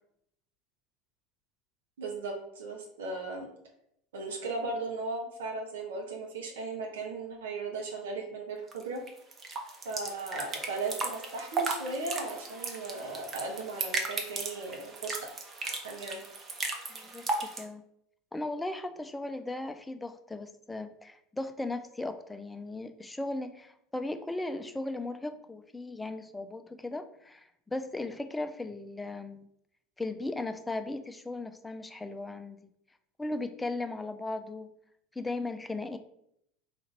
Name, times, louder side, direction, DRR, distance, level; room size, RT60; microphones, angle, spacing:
voice 1, 2.0-3.5 4.1-9.0 9.8-15.2 15.6-16.2, right 3 dB, 70° right, 0 dB, 0.8 m, -37 dB
sound 1, 8.7-17.6, right 3 dB, 30° right, 0.8 m, -36 dB
voice 2, 16.9-17.8 18.3-29.5 30.0-32.6 33.2-34.7 35.2-36.0, left 2 dB, 10° left, 8 dB, 0.4 m, -37 dB
3.8 x 2.5 x 4.3 m, 0.73 s
figure-of-eight pair, 75°, 0 cm